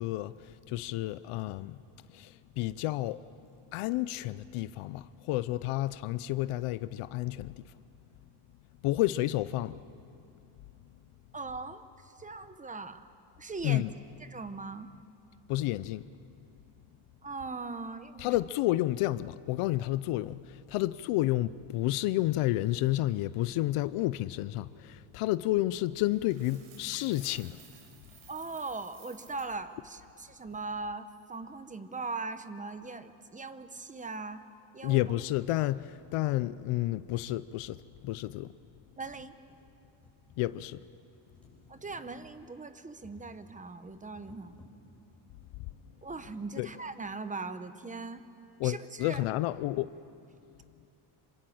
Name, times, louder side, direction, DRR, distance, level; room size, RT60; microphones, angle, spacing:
voice 1, 0.0-1.8 2.1-3.2 3.7-7.6 8.8-9.8 13.6-13.9 15.5-16.1 18.2-27.6 34.8-37.8 38.0-38.5 40.4-40.8 46.6-46.7 48.6-49.9, left 16 dB, 85° left, 0.7 m, -30 dB
voice 2, 11.3-13.0 13.4-13.8 14.2-14.9 17.2-18.4 20.8-20.9 28.3-34.4 34.7-35.0 39.0-39.3 41.7-44.6 46.0-48.3 48.6-49.2, right 3 dB, 15° right, 0.9 m, -40 dB
Coin (dropping), 26.1-29.6, right 7 dB, 65° right, 4.8 m, -56 dB
sound 1, 38.9-46.4 47.3-47.4 47.6-47.7, left 1 dB, ahead, 6.4 m, -60 dB
27.0 x 26.0 x 7.8 m
cardioid pair, 160°, 50 cm